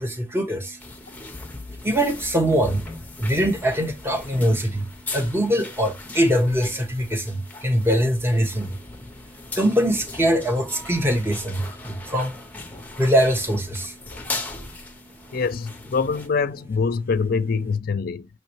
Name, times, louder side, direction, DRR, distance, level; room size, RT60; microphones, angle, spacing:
voice 1, 0.0-15.4, equal, 15° right, 1.0 m, -24 dB
sound 1, 0.8-16.3, left 3 dB, 10° left, 0.7 m, -38 dB
voice 2, 15.3-18.3, left 5 dB, 50° left, 0.4 m, -24 dB
5.7 x 3.1 x 3.0 m
head